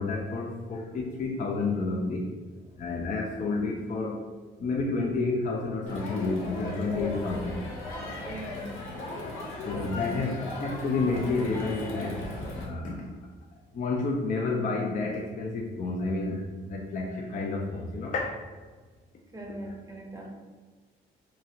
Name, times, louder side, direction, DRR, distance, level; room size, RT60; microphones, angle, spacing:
voice 1, 0.0-2.2 2.8-4.2 4.6-7.6 9.7-12.2 12.6-13.0 13.8-16.4 16.7-18.3, left 3 dB, 40° left, -1 dB, 0.4 m, -30 dB
Crowd, 5.9-12.6, left 2 dB, 80° left, 0.7 m, -37 dB
voice 2, 8.2-9.0 19.3-20.3, right 1 dB, 15° right, -1 dB, 0.7 m, -41 dB
2.9 x 2.5 x 2.8 m, 1.4 s
cardioid pair, 90°, 20 cm